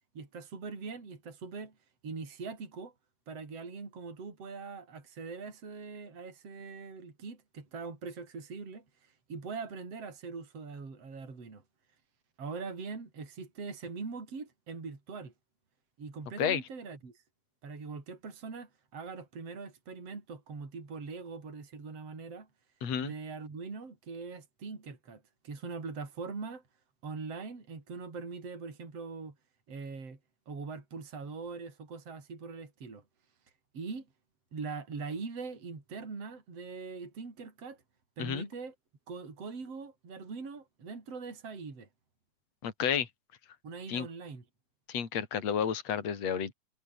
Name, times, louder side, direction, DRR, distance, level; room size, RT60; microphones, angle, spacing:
voice 1, 0.1-1.7 2.0-2.9 3.3-11.6 12.4-15.3 16.0-17.2 17.6-22.5 23.0-26.6 27.0-29.4 29.7-30.2 30.5-33.0 33.7-34.1 34.5-37.8 38.2-38.7 39.1-41.9 43.6-44.4, right 4 dB, 40° right, 5.9 m, -42 dB
voice 2, 22.8-23.1 38.2-38.4 42.6-43.1 43.9-44.1 44.9-46.5, left 7 dB, 45° left, 4.2 m, -31 dB
omnidirectional pair, 4.2 m